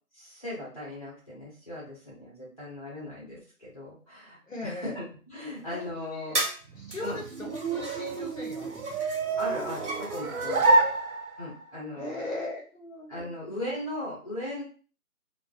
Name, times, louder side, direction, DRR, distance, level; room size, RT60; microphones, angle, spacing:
voice 1, 0.1-6.4 7.0-7.2 9.4-10.6 11.4-12.3 13.1-14.6, left 1 dB, 25° left, -6 dB, 0.8 m, -38 dB
voice 2, 4.5-5.0 5.7-6.4 6.7-9.0 10.4-10.9 12.0-13.3, left 2 dB, 55° left, -1 dB, 0.8 m, -38 dB
sound 1, 5.7-5.8 6.3-6.6 6.9-10.7, right 2 dB, 50° right, 0.9 m, -37 dB
sound 2, 6.7-11.7, right 3 dB, 65° right, 0.5 m, -28 dB
2.5 x 2.2 x 2.3 m, 0.39 s
figure-of-eight pair, 165°, 46 cm